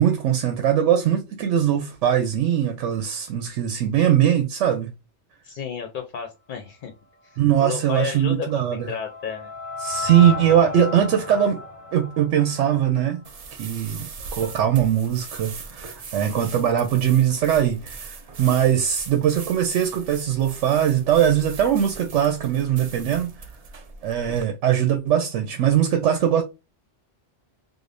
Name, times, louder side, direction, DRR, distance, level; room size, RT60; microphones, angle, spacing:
voice 1, 0.0-4.9 7.4-8.9 9.8-11.6 11.9-13.2 13.5-23.5 24.0-26.4, right 10 dB, 85° right, 0.9 m, -21 dB
voice 2, 5.4-6.9 7.2-9.5, left 6 dB, 55° left, 0.6 m, -32 dB
sound 1, 8.1-13.3, left 3 dB, 25° right, 2.3 m, -34 dB
sound 2, 13.2-24.4, right 4 dB, 50° right, 0.4 m, -40 dB
5.0 x 2.1 x 2.5 m
omnidirectional pair, 1.2 m